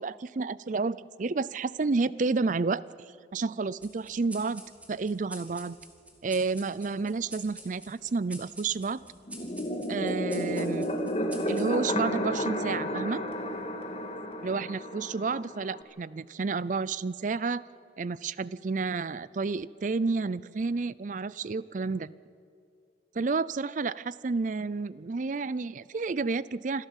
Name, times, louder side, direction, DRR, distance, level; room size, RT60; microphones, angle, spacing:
voice 1, 0.0-2.8 3.3-4.6 4.9-5.8 6.2-9.0 9.9-10.9 11.5-13.2 14.4-17.6 18.0-22.1 23.1-26.9, right 4 dB, 45° right, 19 dB, 0.4 m, -30 dB
sound 1, 3.8-12.7, right 1 dB, 10° right, 2.3 m, -49 dB
sound 2, 9.3-15.8, equal, 35° left, 1.7 m, -32 dB
26.5 x 14.0 x 7.3 m, 2.3 s
head